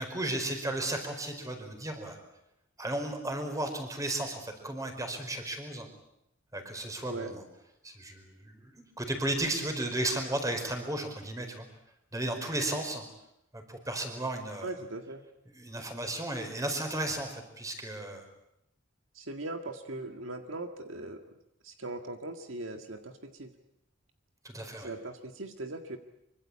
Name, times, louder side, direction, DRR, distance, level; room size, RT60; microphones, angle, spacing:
voice 1, 0.0-2.2 2.8-5.9 6.5-7.4 7.8-11.7 12.1-13.1 13.5-14.7 15.5-18.3 24.4-24.9, right 1 dB, 15° right, 6 dB, 4.7 m, -34 dB
voice 2, 14.6-15.2 19.1-21.2 21.6-23.5 24.8-26.0, right 2 dB, 70° right, 6 dB, 1.9 m, -39 dB
24.5 x 24.5 x 8.6 m, 0.82 s
head